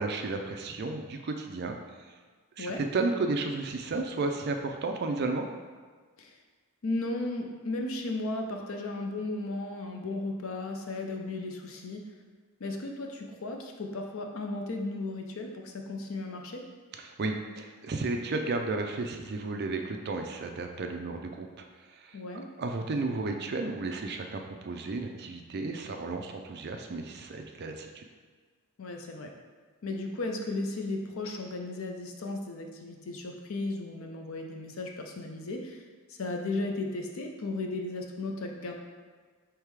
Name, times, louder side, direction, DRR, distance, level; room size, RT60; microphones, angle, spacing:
voice 1, 0.0-1.8 2.6-5.5 17.0-21.7 21.9-22.2 22.6-28.0, right 3 dB, 50° right, 4 dB, 0.4 m, -33 dB
voice 2, 6.8-12.0 12.6-16.6 22.1-22.5 28.8-29.3 29.8-38.7, left 2 dB, 65° left, 2 dB, 0.6 m, -35 dB
3.5 x 3.2 x 4.7 m, 1.5 s
head